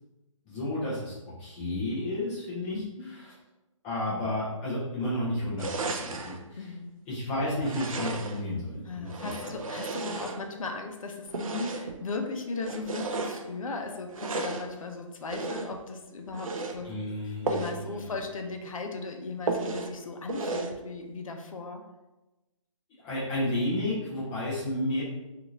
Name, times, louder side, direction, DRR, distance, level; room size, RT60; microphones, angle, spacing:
voice 1, 0.4-3.3 3.8-6.7 7.1-9.7 16.8-18.1 23.0-25.0, left 1 dB, 5° left, -9 dB, 0.3 m, -32 dB
voice 2, 2.7-3.1 6.6-6.9 8.9-16.9 17.5-21.8, left 3 dB, 80° left, 4 dB, 0.5 m, -37 dB
sound 1, 5.6-6.4 7.6-8.5 9.0-10.7 11.3-12.0 12.6-13.5 14.1-14.7 15.3-15.8 16.3-16.8 17.4-17.8 18.2-18.3 18.6-18.7 19.5-19.9 20.3-20.8, right 3 dB, 90° right, 0.4 m, -34 dB
2.6 x 2.4 x 2.9 m, 1.1 s
hypercardioid pair, 160°, 17 cm